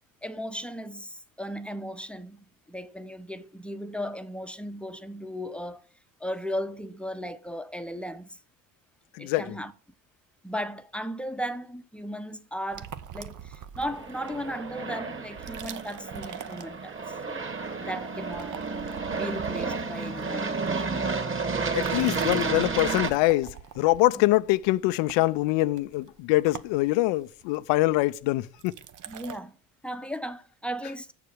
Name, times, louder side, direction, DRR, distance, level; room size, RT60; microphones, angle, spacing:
voice 1, 0.2-5.9 6.2-8.4 9.2-9.7 10.4-17.5 17.8-18.6 19.1-21.1 29.1-29.5 29.8-31.1, equal, 5° left, 0.8 m, -36 dB
sound 1, 12.7-14.5 15.3-17.2 17.5-17.9 18.2-21.2 21.7-29.4, right 9 dB, 45° right, 0.9 m, -44 dB
Aircraft, 13.9-23.1, right 4 dB, 30° right, 2.1 m, -31 dB
voice 2, 21.7-28.7, left 18 dB, 75° left, 0.6 m, -24 dB
7.0 x 6.8 x 6.4 m
hypercardioid pair, 65°, 43 cm